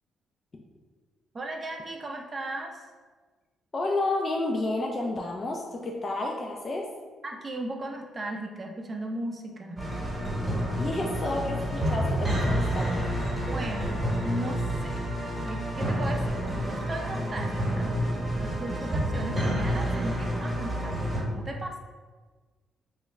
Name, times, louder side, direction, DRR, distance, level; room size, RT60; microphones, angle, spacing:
voice 1, 1.3-2.8 7.2-9.8 13.5-15.0 15.5-17.9 18.3-21.8, right 2 dB, 30° right, 2 dB, 0.5 m, -36 dB
voice 2, 3.7-6.9 10.7-13.2, left 2 dB, 35° left, 0 dB, 0.3 m, -30 dB
sound 1, 9.8-21.2, equal, 15° right, 1.0 m, -29 dB
3.0 x 2.3 x 3.1 m, 1.4 s
cardioid pair, 90°, 0 cm